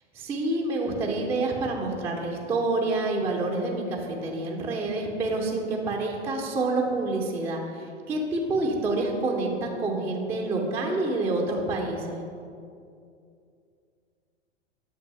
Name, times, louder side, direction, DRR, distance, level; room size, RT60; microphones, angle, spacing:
voice 1, 0.1-12.2, right 2 dB, 5° right, -2 dB, 0.4 m, -28 dB
7.7 x 2.7 x 5.4 m, 2.5 s
figure-of-eight pair, 95°, 37 cm